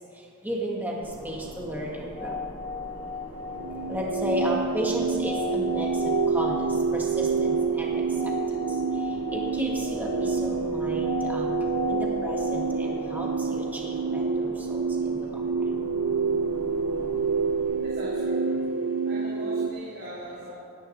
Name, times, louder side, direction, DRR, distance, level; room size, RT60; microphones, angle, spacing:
voice 1, 0.4-2.4 3.9-6.6 6.9-7.9 9.3-11.5 11.9-15.3, equal, 10° right, -3 dB, 1.7 m, -33 dB
sound 1, 1.0-17.6, equal, 85° left, 3.2 m, -43 dB
sound 2, 1.8-14.5, left 4 dB, 30° left, 2.7 m, -37 dB
sound 3, 3.5-19.7, right 5 dB, 90° right, 0.5 m, -27 dB
voice 2, 17.8-18.6 19.0-20.5, right 1 dB, 60° right, -9 dB, 3.4 m, -40 dB
25.5 x 10.0 x 3.2 m, 2.4 s
head